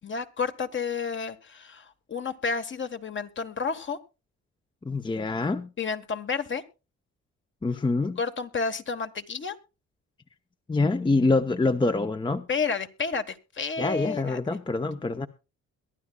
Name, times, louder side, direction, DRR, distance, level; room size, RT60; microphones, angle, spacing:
voice 1, 0.0-4.0 5.8-6.6 8.2-9.6 12.5-14.6, left 5 dB, 40° left, 9 dB, 1.4 m, -31 dB
voice 2, 4.8-5.7 7.6-8.2 10.7-12.5 13.8-15.3, left 3 dB, 15° left, 9 dB, 0.7 m, -25 dB
22.5 x 11.5 x 2.3 m, 0.30 s
cardioid pair, 90°, 30 cm